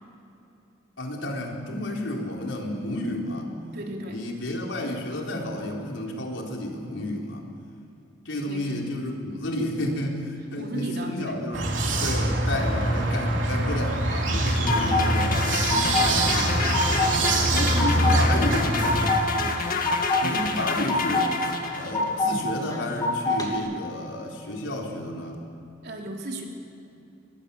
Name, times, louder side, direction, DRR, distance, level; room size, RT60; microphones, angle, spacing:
voice 1, 1.0-3.5 4.1-7.4 8.2-11.6 12.0-15.4 15.7-17.1 17.5-18.9 19.3-19.5 20.2-25.4, left 1 dB, 85° left, 0 dB, 4.1 m, -31 dB
voice 2, 3.7-4.2 8.5-8.7 10.6-11.4 17.2-18.6 18.9-19.2 25.8-26.4, right 1 dB, 60° right, 1 dB, 3.6 m, -34 dB
sound 1, 11.5-19.1, right 1 dB, 85° right, 3.4 m, -24 dB
sound 2, 14.0-15.1 15.4-16.1 16.4-17.1 17.5-18.2 18.5-19.2 19.6-20.2 20.6-21.3 21.6-22.3 22.7-23.5, left 3 dB, 20° left, 3.1 m, -25 dB
sound 3, 14.5-22.2, left 3 dB, 50° left, 1.9 m, -29 dB
23.5 x 21.0 x 7.1 m, 2.7 s
head